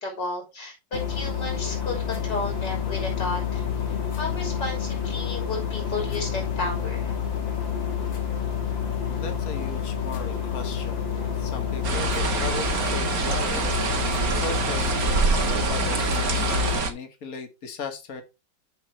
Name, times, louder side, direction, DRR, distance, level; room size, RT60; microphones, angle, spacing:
voice 1, 0.0-7.1, left 2 dB, 65° left, 4.4 m, -33 dB
sound 1, 0.9-16.8, left 8 dB, 85° left, 2.7 m, -29 dB
voice 2, 9.1-18.2, left 4 dB, 50° left, 2.2 m, -38 dB
sound 2, 11.8-16.9, right 4 dB, 55° right, 2.0 m, -25 dB
14.0 x 5.9 x 3.3 m
omnidirectional pair, 2.0 m